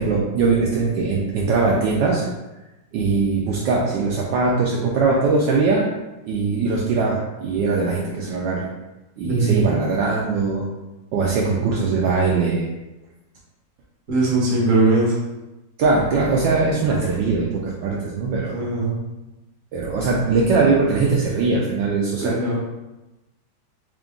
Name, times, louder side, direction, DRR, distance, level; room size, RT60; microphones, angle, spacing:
voice 1, 0.0-2.2 2.9-5.8 6.2-8.7 9.2-10.7 11.1-12.7 15.8-18.6 19.7-22.3, right 4 dB, 75° right, -3 dB, 1.2 m, -21 dB
voice 2, 9.2-9.6 14.1-15.2 18.5-19.0 22.2-22.6, right 3 dB, 50° right, -4 dB, 1.2 m, -20 dB
3.7 x 2.5 x 3.6 m, 1.0 s
omnidirectional pair, 2.1 m